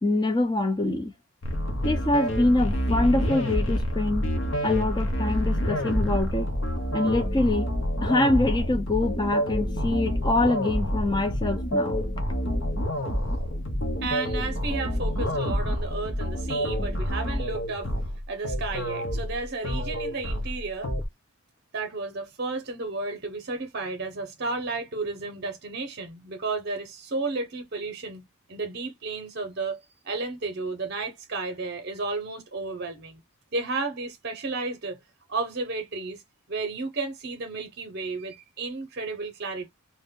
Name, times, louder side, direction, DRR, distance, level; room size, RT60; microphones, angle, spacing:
voice 1, 0.0-1.1 1.8-4.3 4.6-6.5 6.9-7.7 8.0-12.0, left 2 dB, 20° left, 0.5 m, -25 dB
sound 1, 1.4-21.1, equal, 60° left, 0.7 m, -28 dB
voice 2, 14.0-17.9 18.3-20.9 21.7-29.8 30.0-33.2 33.5-35.0 35.3-36.2 36.5-39.7, right 3 dB, 50° right, 0.7 m, -33 dB
2.6 x 2.1 x 3.5 m
head